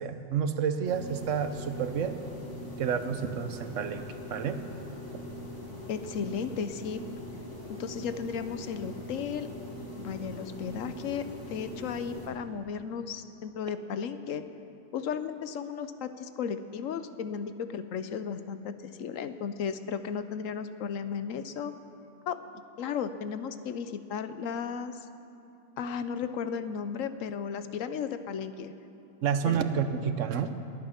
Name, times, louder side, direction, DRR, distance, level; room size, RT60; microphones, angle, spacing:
voice 1, 0.0-2.2 2.8-4.6 29.2-30.5, right 7 dB, 75° right, 9 dB, 1.1 m, -30 dB
sound 1, 0.8-12.3, left 1 dB, 15° left, 2.5 m, -42 dB
voice 2, 5.9-7.0 7.7-9.5 10.0-14.5 14.9-21.7 22.3-24.9 25.8-28.7 29.5-29.6, left 7 dB, 85° left, 11 dB, 1.1 m, -35 dB
21.0 x 8.9 x 5.8 m, 2.8 s
omnidirectional pair, 1.3 m